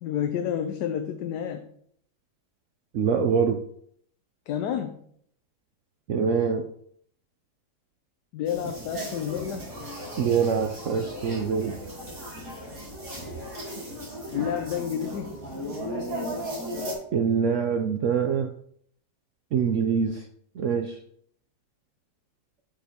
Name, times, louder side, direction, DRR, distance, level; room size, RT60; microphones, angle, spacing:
voice 1, 0.0-1.7 4.5-5.0 8.3-9.7 14.3-15.4, left 9 dB, 75° left, 7 dB, 1.2 m, -30 dB
voice 2, 2.9-3.6 6.1-6.6 10.2-11.8 17.1-18.5 19.5-20.2 20.6-21.0, right 6 dB, 75° right, 4 dB, 0.7 m, -24 dB
sound 1, 8.4-16.9, equal, 50° right, 3.0 m, -36 dB
8.8 x 7.1 x 2.9 m, 0.66 s
omnidirectional pair, 1.9 m